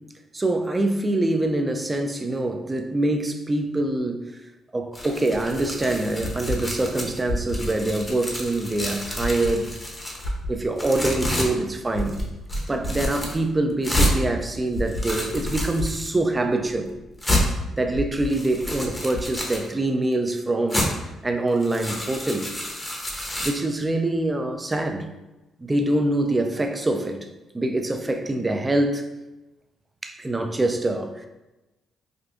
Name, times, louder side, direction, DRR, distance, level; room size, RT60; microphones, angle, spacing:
voice 1, 0.3-4.2 4.7-9.7 10.5-12.2 12.7-16.9 17.7-20.9 21.2-22.5 23.4-25.1 25.6-27.2 27.5-29.0 30.0-31.3, right 2 dB, 20° right, 5 dB, 0.4 m, -24 dB
sound 1, 4.9-7.2 7.5-10.3 10.8-11.5 12.0-12.2 12.5-13.4 13.8-14.1 14.8-16.1 16.7-16.8 17.2-17.4 18.2-19.7 20.7-20.9 21.5-23.5, left 1 dB, 15° left, 0.7 m, -29 dB
sound 2, 6.2-19.4, left 1 dB, 70° left, 0.9 m, -35 dB
4.9 x 2.2 x 2.5 m, 1.0 s
cardioid pair, 90°, 0 cm